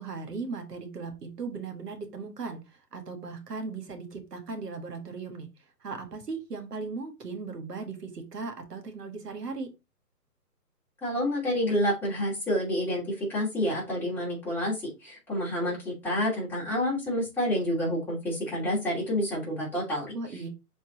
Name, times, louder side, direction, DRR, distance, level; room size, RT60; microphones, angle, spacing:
voice 1, 0.0-2.6 2.9-5.5 5.8-9.7 20.1-20.5, right 4 dB, 70° right, 4 dB, 1.8 m, -37 dB
voice 2, 11.0-20.5, left 1 dB, 5° left, -7 dB, 2.7 m, -29 dB
7.5 x 4.4 x 3.0 m, 0.26 s
hypercardioid pair, 145°, 49 cm